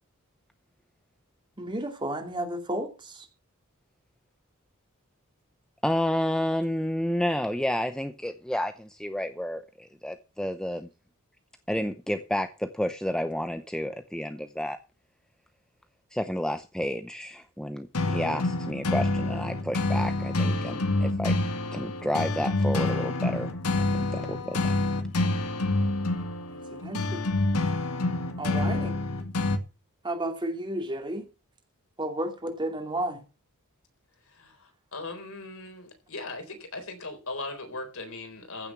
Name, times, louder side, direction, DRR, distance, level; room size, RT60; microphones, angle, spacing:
voice 1, 1.6-3.3 26.5-27.2 28.4-28.9 30.0-31.3 32.0-33.2, right 1 dB, 20° right, 2.5 m, -32 dB
voice 2, 5.8-10.9 11.7-14.8 16.1-21.3 21.7-23.5 23.9-24.8, left 1 dB, 5° left, 0.7 m, -30 dB
sound 1, 17.9-29.6, left 2 dB, 85° left, 1.6 m, -27 dB
voice 3, 34.9-38.7, left 2 dB, 65° left, 4.0 m, -38 dB
15.0 x 7.1 x 6.1 m
head